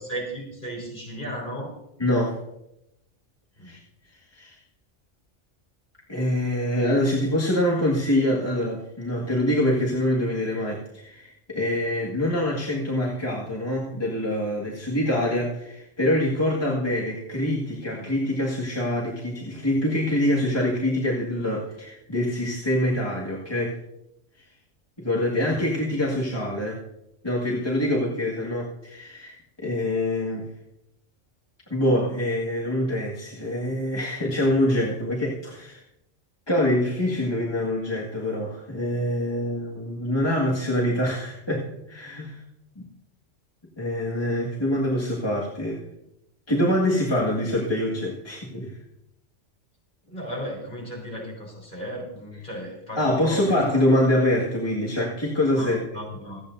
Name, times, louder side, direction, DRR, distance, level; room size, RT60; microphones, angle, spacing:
voice 1, 0.0-1.8 3.6-3.8 50.1-53.6 55.6-56.4, equal, 40° left, -2 dB, 3.9 m, -35 dB
voice 2, 2.0-2.4 3.6-3.8 4.3-4.6 6.1-23.8 25.0-26.8 27.2-30.5 31.7-35.8 36.5-42.4 42.8-42.9 43.8-45.8 46.5-48.8 52.9-55.9, left 1 dB, 20° left, -5 dB, 1.8 m, -25 dB
26.0 x 8.8 x 2.6 m, 0.84 s
omnidirectional pair, 1.3 m